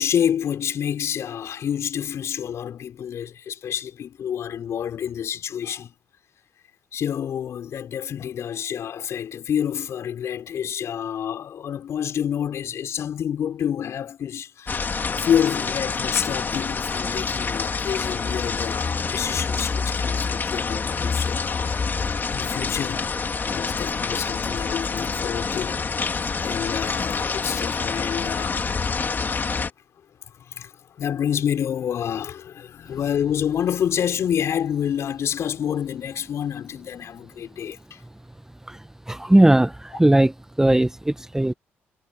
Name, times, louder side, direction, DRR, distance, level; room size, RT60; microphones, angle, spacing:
voice 1, 0.0-5.9 6.9-23.1 23.4-28.6 30.3-38.0, left 9 dB, 60° left, 5.1 m, -28 dB
sound 1, 14.7-29.7, left 4 dB, 40° left, 2.6 m, -27 dB
voice 2, 39.1-41.5, right 1 dB, 10° right, 0.9 m, -18 dB
supercardioid pair, 60°, 5 cm